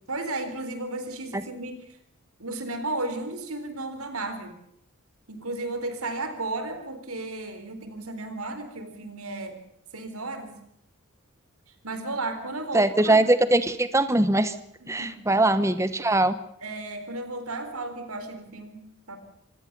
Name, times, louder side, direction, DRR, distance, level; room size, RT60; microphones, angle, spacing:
voice 1, 0.1-1.8 2.4-4.6 5.3-9.6 9.9-10.6 11.8-13.2 14.8-15.2 16.6-19.2, right 2 dB, 80° right, 9 dB, 4.0 m, -34 dB
voice 2, 12.7-14.5 14.9-16.3, right 2 dB, 15° right, 13 dB, 1.1 m, -21 dB
26.0 x 16.5 x 6.9 m, 0.75 s
head